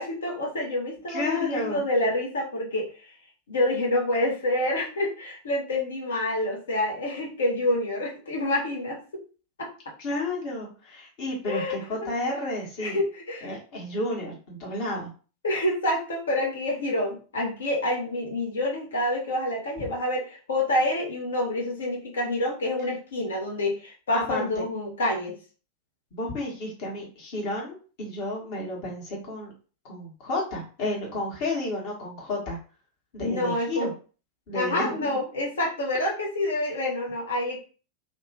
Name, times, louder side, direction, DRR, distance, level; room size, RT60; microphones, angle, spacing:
voice 1, 0.0-2.9 3.5-9.0 9.6-9.7 11.5-11.8 12.8-13.6 15.4-25.3 33.2-33.9 34.5-37.6, left 1 dB, 65° left, -1 dB, 0.9 m, -27 dB
voice 2, 1.1-1.8 10.0-13.0 13.4-15.1 24.1-24.6 26.1-29.5 29.9-32.6 33.1-33.9 34.5-35.1, left 2 dB, 45° left, -2 dB, 1.2 m, -31 dB
2.7 x 2.2 x 2.8 m, 0.37 s
figure-of-eight pair, 90°, 0 cm